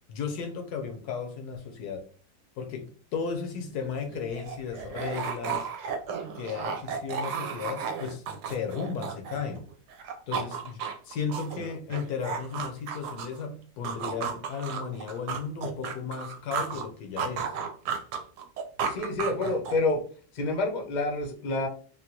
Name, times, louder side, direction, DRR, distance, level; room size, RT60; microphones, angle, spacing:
voice 1, 0.1-2.1 2.6-5.7 6.4-9.6 10.3-17.5, left 6 dB, 75° left, 1.1 m, -35 dB
sound 1, 3.8-9.6 9.9-13.4 13.8-16.9 17.2-19.9, right 6 dB, 75° right, 1.1 m, -34 dB
voice 2, 18.9-20.0 20.3-21.7, left 2 dB, 50° left, 0.5 m, -28 dB
3.6 x 2.1 x 2.8 m
omnidirectional pair, 1.8 m